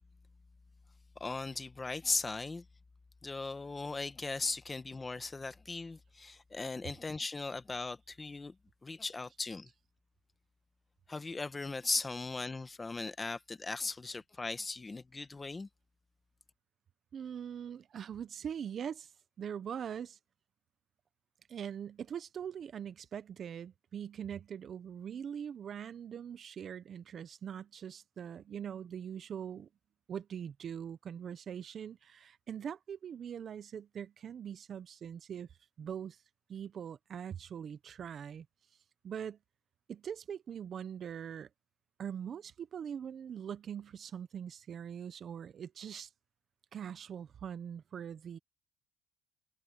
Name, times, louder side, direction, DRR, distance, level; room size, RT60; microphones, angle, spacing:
voice 1, 1.2-2.6 3.2-8.6 8.8-9.7 11.1-15.7, left 3 dB, 20° left, 1.2 m, -38 dB
voice 2, 17.1-19.1 19.4-20.2 21.5-29.7 30.1-35.5 35.8-36.2 36.5-38.5 39.0-39.4 39.9-41.5 42.0-46.1 46.7-48.4, right 8 dB, 40° right, 0.8 m, -42 dB
cardioid pair, 120°, 0 cm